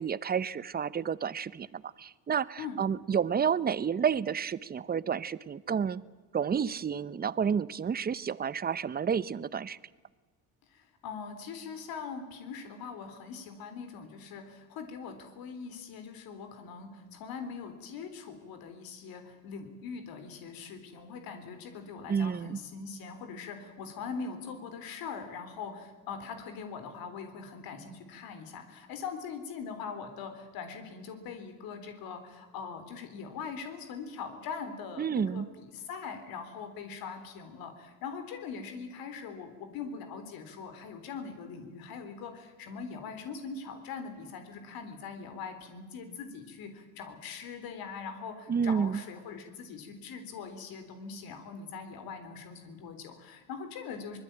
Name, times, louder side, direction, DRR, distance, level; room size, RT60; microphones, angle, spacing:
voice 1, 0.0-6.0 6.3-9.8 22.1-22.6 35.0-35.5 48.5-49.0, right 7 dB, 25° right, 18 dB, 0.8 m, -30 dB
voice 2, 10.7-54.2, left 5 dB, 80° left, 7 dB, 3.8 m, -42 dB
24.5 x 21.0 x 8.9 m, 1.3 s
cardioid pair, 130°, 35 cm